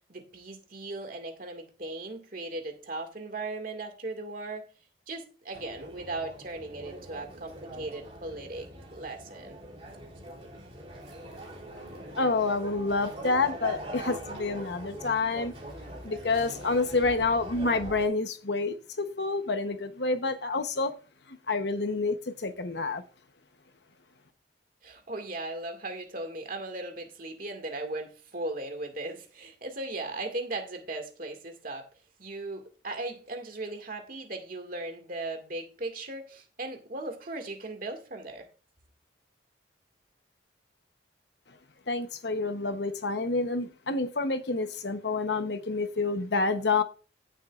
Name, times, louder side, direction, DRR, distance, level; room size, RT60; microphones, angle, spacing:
voice 1, 0.1-4.7 5.1-9.6 24.8-31.9 32.2-38.5, right 2 dB, 45° right, 2.1 m, -37 dB
sound 1, 5.5-18.1, right 1 dB, 30° right, 3.2 m, -42 dB
voice 2, 12.2-15.5 16.0-20.9 21.3-23.0 41.9-46.8, left 3 dB, 60° left, 1.0 m, -28 dB
16.0 x 7.3 x 2.5 m
head